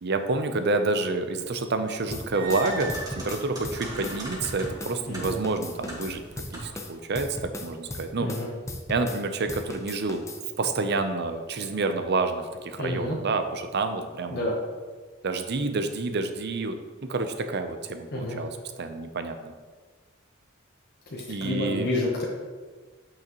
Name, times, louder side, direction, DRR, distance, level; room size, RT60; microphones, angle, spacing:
voice 1, 0.0-6.2 6.6-8.3 8.9-10.3 10.6-14.5 15.2-19.5 21.3-21.9, right 3 dB, 55° right, 8 dB, 0.6 m, -28 dB
sound 1, 1.9-6.9, right 1 dB, 20° right, 1.9 m, -39 dB
sound 2, 2.1-5.0 5.2-9.2 9.5-10.4, left 1 dB, 15° left, 0.6 m, -37 dB
voice 2, 12.8-13.2 14.3-14.6 18.1-18.4 21.1-22.2, left 1 dB, 55° left, -4 dB, 1.0 m, -29 dB
8.4 x 5.8 x 3.0 m, 1.4 s
head